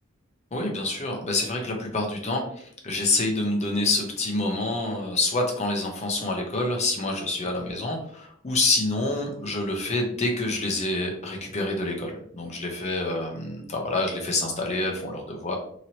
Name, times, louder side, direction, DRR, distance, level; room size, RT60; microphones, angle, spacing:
voice 1, 0.5-15.5, left 2 dB, 35° left, 1 dB, 0.7 m, -27 dB
2.9 x 2.8 x 2.8 m, 0.62 s
head